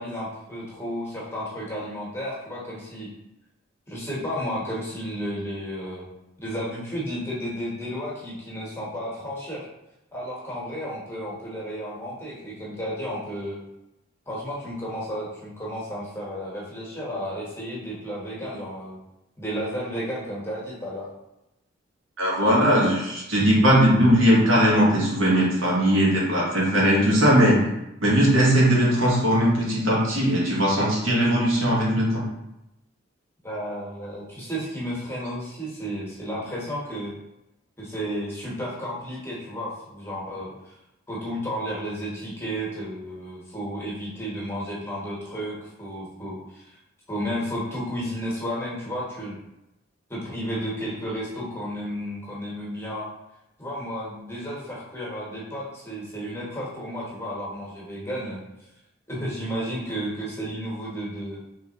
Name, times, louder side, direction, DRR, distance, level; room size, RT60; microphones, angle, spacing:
voice 1, 0.0-3.1 3.9-6.0 6.4-9.6 10.1-13.6 14.3-19.0 19.4-21.1 33.4-37.1 37.8-40.5 41.1-46.8 47.1-49.4 50.1-53.1 53.6-58.4 59.1-61.4, equal, 15° left, -6 dB, 1.1 m, -32 dB
voice 2, 22.2-27.6 28.0-32.2, equal, 80° right, -4 dB, 1.2 m, -19 dB
3.4 x 3.3 x 2.9 m, 0.89 s
head